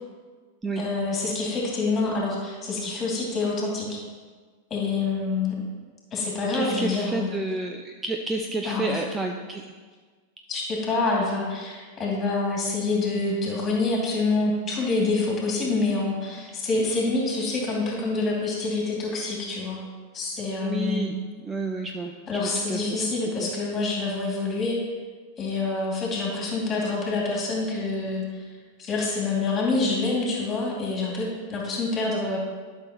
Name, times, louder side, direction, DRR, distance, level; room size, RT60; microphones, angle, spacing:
voice 1, 0.8-4.0 4.7-5.6 6.1-7.4 8.6-8.9 10.5-19.8 20.1-21.1 22.3-24.8 25.4-28.4 28.8-32.4, left 3 dB, 25° left, -3 dB, 2.6 m, -26 dB
voice 2, 6.5-9.6 20.6-21.2 21.4-23.5, right 2 dB, 10° right, 3 dB, 0.5 m, -30 dB
11.5 x 6.1 x 3.1 m, 1.5 s
figure-of-eight pair, 90°, 0 cm